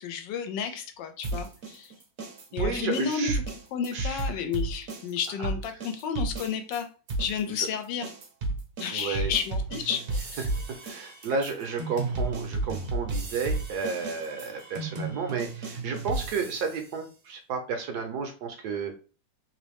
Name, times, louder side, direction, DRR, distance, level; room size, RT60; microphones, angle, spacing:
voice 1, 0.0-1.9 2.5-3.4 3.7-6.9 7.2-8.1 8.8-10.4, left 6 dB, 80° left, 7 dB, 1.2 m, -31 dB
sound 1, 1.2-6.8 7.1-16.8, right 2 dB, 50° right, 0.8 m, -33 dB
voice 2, 2.6-3.4 3.9-4.3 8.9-9.3 10.8-19.0, right 5 dB, 70° right, 4 dB, 1.1 m, -32 dB
3.1 x 2.6 x 3.4 m, 0.36 s
omnidirectional pair, 2.0 m